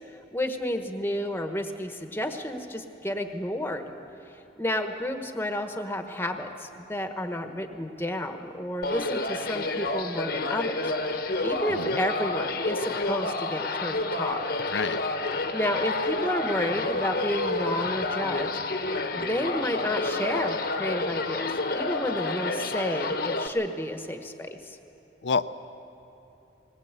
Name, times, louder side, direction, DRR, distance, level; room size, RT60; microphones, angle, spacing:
voice 1, 0.3-3.8 4.3-10.9 11.4-14.4 15.5-18.5 19.1-24.8, left 1 dB, 10° left, 6 dB, 1.1 m, -31 dB
sound 1, 8.8-23.5, left 2 dB, 55° left, 1.1 m, -29 dB
voice 2, 14.7-15.0 25.2-25.5, left 5 dB, 85° left, 12 dB, 0.7 m, -28 dB
20.0 x 19.0 x 8.2 m, 3.0 s
head